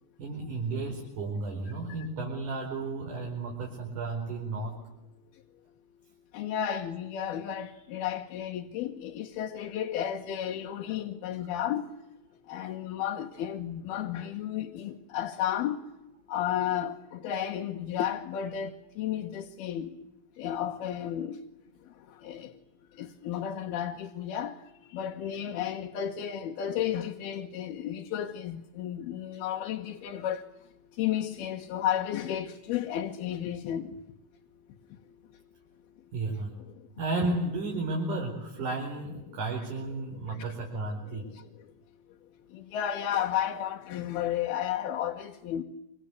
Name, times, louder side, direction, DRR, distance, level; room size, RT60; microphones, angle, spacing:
voice 1, 0.2-4.8 11.4-11.5 36.1-36.5 37.0-41.3, right 2 dB, 55° right, 6.2 m, -33 dB
voice 2, 6.3-11.9 12.5-15.8 16.3-19.9 20.4-21.4 22.2-22.5 23.0-24.6 24.9-30.4 31.0-33.9 39.3-39.4 40.3-40.5 41.4-41.5 42.5-45.6, left 10 dB, 90° left, 3.3 m, -32 dB
27.5 x 25.5 x 8.3 m
omnidirectional pair, 4.3 m